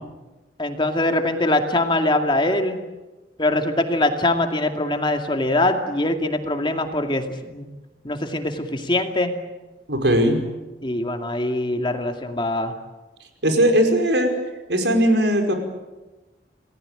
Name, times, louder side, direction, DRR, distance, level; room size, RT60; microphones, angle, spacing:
voice 1, 0.6-2.8 3.4-7.7 8.0-9.3 10.8-12.7, left 2 dB, 30° left, 5 dB, 2.4 m, -22 dB
voice 2, 9.9-10.4 13.4-14.3 14.7-15.5, equal, 80° right, 5 dB, 5.2 m, -18 dB
29.0 x 19.5 x 9.0 m, 1.1 s
head